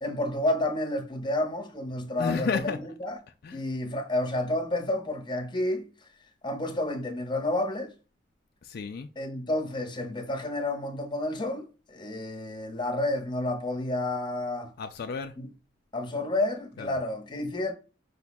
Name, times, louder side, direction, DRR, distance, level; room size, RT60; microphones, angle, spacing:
voice 1, 0.0-3.2 3.5-5.9 6.4-7.9 9.2-14.7 15.4-15.5 15.9-17.7, left 1 dB, 25° left, 0.9 m, -30 dB
voice 2, 2.2-2.8 3.4-3.6 8.6-9.1 14.8-15.3 16.8-17.0, left 5 dB, 55° left, 0.4 m, -32 dB
5.1 x 2.3 x 4.0 m
head